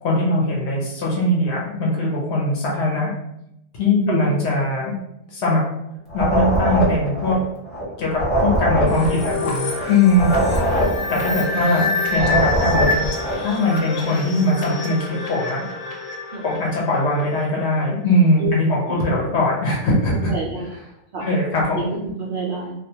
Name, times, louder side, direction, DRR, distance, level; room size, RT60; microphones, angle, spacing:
voice 1, 0.0-3.1 3.7-4.9 5.3-5.6 6.1-7.4 8.0-10.3 11.1-12.9 13.4-15.6 16.4-20.3 21.2-21.8, left 1 dB, 60° left, -3 dB, 0.8 m, -21 dB
voice 2, 3.9-4.2 11.5-11.6 16.3-16.4 18.4-18.6 18.9-19.0 20.1-20.7 21.1-21.2 21.7-22.7, right 3 dB, 80° right, -4 dB, 0.4 m, -26 dB
sound 1, 6.1-7.8 8.1-11.8 12.1-13.5, right 1 dB, ahead, 0.5 m, -22 dB
sound 2, 8.9-17.5, left 3 dB, 85° left, 1.0 m, -27 dB
2.3 x 2.2 x 2.7 m, 0.80 s
omnidirectional pair, 1.4 m